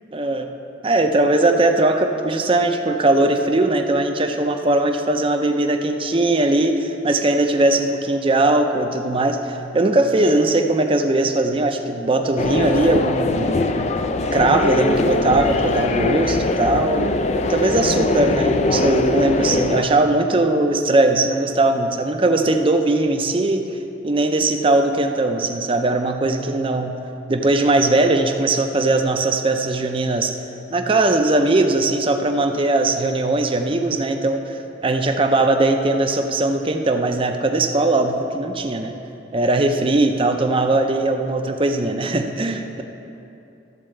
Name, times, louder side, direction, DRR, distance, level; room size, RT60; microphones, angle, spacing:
voice 1, 0.1-0.5 0.8-13.6 14.3-17.1 17.5-23.7 24.0-27.0 27.3-30.3 30.7-38.9 39.3-42.8, right 2 dB, 30° right, 5 dB, 0.6 m, -19 dB
sound 1, 12.4-19.8, left 2 dB, 40° left, 0.4 m, -21 dB
13.0 x 4.3 x 7.7 m, 2.9 s
head